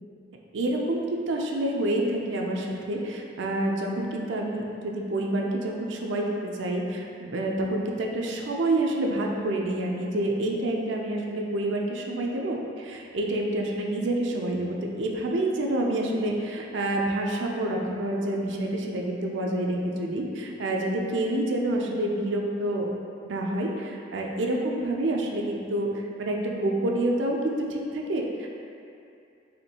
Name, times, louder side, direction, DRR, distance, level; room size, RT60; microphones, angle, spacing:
voice 1, 0.5-22.9 23.2-28.5, right 1 dB, 70° right, 0 dB, 0.4 m, -28 dB
4.2 x 3.1 x 2.8 m, 2.6 s
head